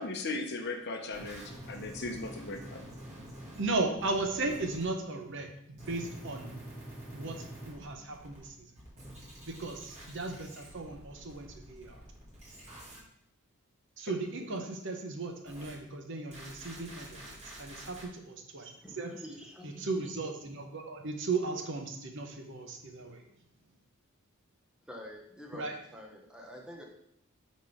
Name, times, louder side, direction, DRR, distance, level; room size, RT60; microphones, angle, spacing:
voice 1, 0.0-2.8, left 3 dB, 50° left, 5 dB, 0.8 m, -37 dB
sound 1, 1.1-4.8 5.8-8.5 8.8-13.0 15.5-15.7 16.3-18.0, right 1 dB, 30° right, 2.1 m, -47 dB
voice 2, 3.6-6.6 7.1-8.5 9.5-12.0 14.0-18.0 18.3-18.7 19.0-19.1 19.8-23.2 25.5-25.7, right 3 dB, 55° right, 3 dB, 0.9 m, -36 dB
voice 3, 18.8-20.1 24.9-26.8, equal, 5° right, 0 dB, 1.0 m, -47 dB
5.9 x 4.2 x 5.0 m, 0.74 s
head